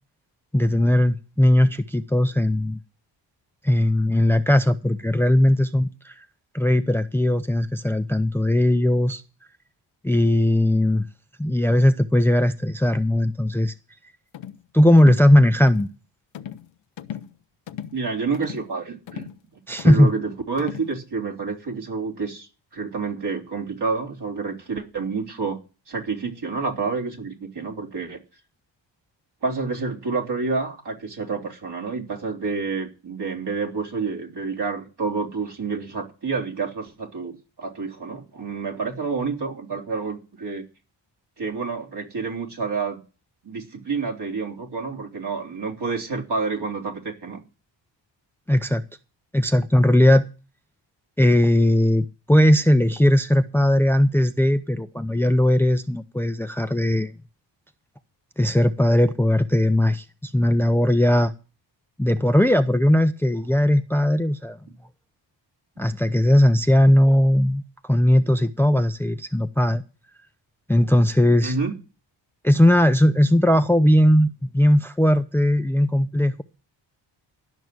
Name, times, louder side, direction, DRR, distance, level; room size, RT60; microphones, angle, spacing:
voice 1, 0.5-2.8 3.6-6.1 6.5-9.2 10.0-11.1 11.4-13.7 14.7-15.9 19.7-20.1 48.5-48.8 49.3-50.2 51.2-57.1 58.4-61.3 62.0-64.6 65.8-67.6 67.9-69.8 70.7-71.5 72.4-76.4, left 1 dB, 5° left, 0.6 m, -18 dB
sound 1, 14.3-14.6 15.0-15.3 15.7-15.9 16.3-16.7 17.0-17.3 17.7-18.0 18.3-18.7 19.1-19.4 19.8-20.1 20.6-20.9, left 10 dB, 75° left, 0.8 m, -37 dB
voice 2, 17.9-19.3 19.8-22.5 22.7-25.6 25.9-28.2 29.4-40.6 41.4-43.0 43.4-47.4 71.4-71.8, right 4 dB, 60° right, 3.6 m, -29 dB
12.5 x 6.2 x 9.4 m
cardioid pair, 85°, 45 cm